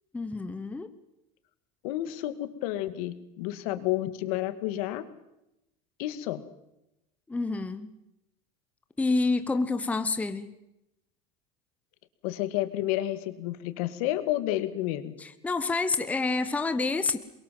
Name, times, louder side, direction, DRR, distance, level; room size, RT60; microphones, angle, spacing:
voice 1, 0.1-0.9 7.3-7.9 9.0-10.5 15.2-17.2, left 3 dB, 5° left, 10 dB, 0.9 m, -28 dB
voice 2, 1.8-5.0 6.0-6.4 12.2-15.2, left 14 dB, 70° left, 11 dB, 2.3 m, -30 dB
28.0 x 22.5 x 7.7 m, 0.91 s
cardioid pair, 165°, 19 cm